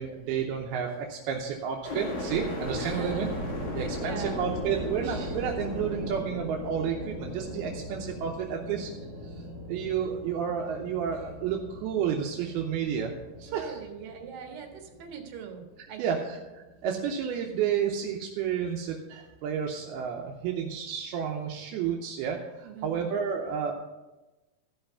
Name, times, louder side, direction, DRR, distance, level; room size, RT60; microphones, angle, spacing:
voice 1, 0.0-3.3 3.7-8.9 9.2-13.1 13.4-13.8 16.0-23.7, right 7 dB, 80° right, 1 dB, 2.7 m, -31 dB
sound 1, 1.8-15.8 16.3-17.1, left 1 dB, 35° left, 2.3 m, -37 dB
voice 2, 2.8-3.3 3.7-4.8 13.4-16.3 22.6-23.2, right 7 dB, 65° right, 2 dB, 3.1 m, -43 dB
14.5 x 5.7 x 5.6 m, 1.1 s
omnidirectional pair, 4.5 m